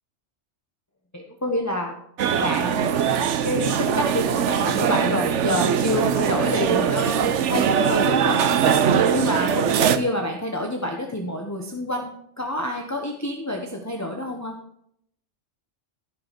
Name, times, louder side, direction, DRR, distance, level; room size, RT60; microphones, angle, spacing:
voice 1, 1.1-1.9 2.4-2.9 3.4-8.8 9.1-14.6, left 1 dB, 15° left, 1 dB, 1.1 m, -28 dB
sound 1, 2.2-10.0, right 8 dB, 80° right, 1.1 m, -21 dB
15.0 x 5.9 x 5.2 m, 0.70 s
omnidirectional pair, 1.2 m